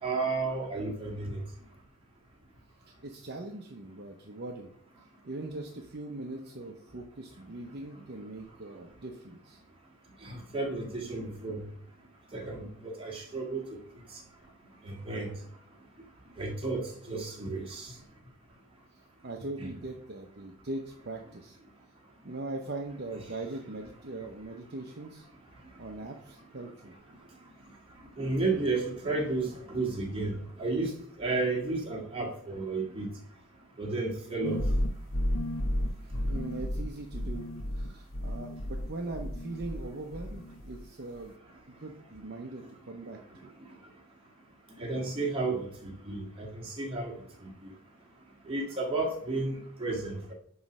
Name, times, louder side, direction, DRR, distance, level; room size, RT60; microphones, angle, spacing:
voice 1, 0.0-1.4 10.2-11.6 12.3-13.6 14.9-15.3 16.4-17.9 19.6-19.7 28.2-30.9 31.2-33.1 33.8-34.6 44.8-47.1 48.5-50.3, right 3 dB, 25° right, -2 dB, 1.9 m, -32 dB
voice 2, 2.8-4.7 5.2-9.6 19.2-21.6 22.2-25.3 25.8-26.9 36.0-37.5 37.7-41.3 41.7-43.5, right 2 dB, 50° right, 2 dB, 0.7 m, -41 dB
sound 1, 34.4-39.9 40.1-40.9, left 1 dB, 65° left, 0.9 m, -32 dB
9.5 x 3.2 x 6.0 m, 0.63 s
head